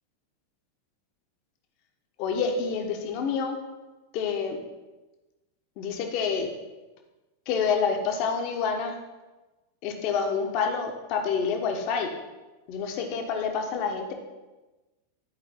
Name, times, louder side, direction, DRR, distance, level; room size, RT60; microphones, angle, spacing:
voice 1, 2.2-3.6 4.1-4.6 5.8-6.5 7.5-9.0 9.8-12.1 12.7-14.1, left 5 dB, 45° left, 4 dB, 1.2 m, -28 dB
11.5 x 5.1 x 3.7 m, 1.1 s
figure-of-eight pair, 90°, 0 cm